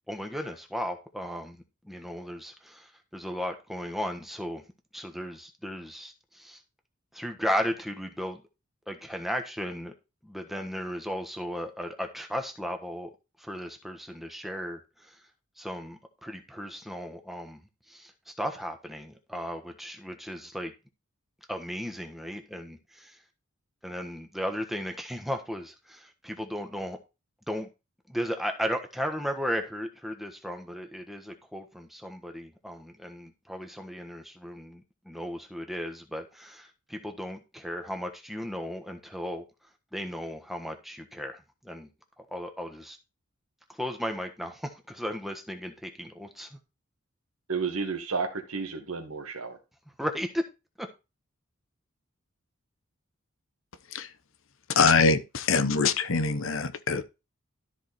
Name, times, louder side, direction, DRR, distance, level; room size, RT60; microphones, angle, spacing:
voice 1, 0.1-4.6 4.9-6.6 7.1-8.4 8.9-9.9 10.2-13.1 13.4-15.2 15.6-17.6 17.9-20.7 21.5-23.2 23.8-27.0 27.5-27.7 28.1-39.4 39.9-41.9 42.2-43.0 43.7-46.6 50.0-50.4 50.8-50.9, equal, ahead, 1.3 m, -35 dB
voice 2, 47.5-49.6, right 5 dB, 80° right, 1.9 m, -32 dB
voice 3, 54.7-57.0, left 4 dB, 65° left, 0.9 m, -23 dB
13.0 x 4.7 x 4.3 m
head